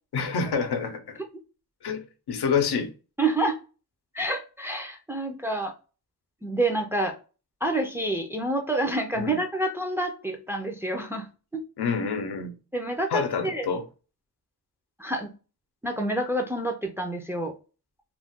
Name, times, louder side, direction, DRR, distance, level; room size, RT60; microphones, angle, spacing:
voice 1, 0.1-1.2 1.8-2.9 9.2-9.4 11.8-12.5 13.1-13.8, left 5 dB, 85° left, 0.6 m, -27 dB
voice 2, 3.2-3.6 4.1-5.7 6.4-7.2 7.6-11.3 11.5-11.6 12.7-13.7 15.0-15.3 15.8-17.5, right 1 dB, 5° right, 0.4 m, -28 dB
2.4 x 2.2 x 3.5 m
wide cardioid pair, 100°, 38 cm